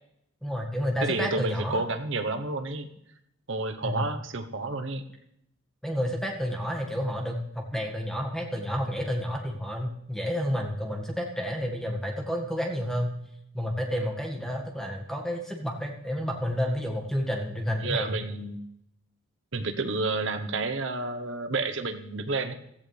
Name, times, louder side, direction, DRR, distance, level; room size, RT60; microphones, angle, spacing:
voice 1, 0.4-1.8 3.8-4.1 5.8-13.2 13.5-18.1, equal, ahead, 1 dB, 1.7 m, -30 dB
voice 2, 1.0-2.9 3.5-5.0 17.8-18.6 19.5-22.5, right 3 dB, 55° right, 8 dB, 1.0 m, -30 dB
16.0 x 14.0 x 3.4 m, 0.78 s
head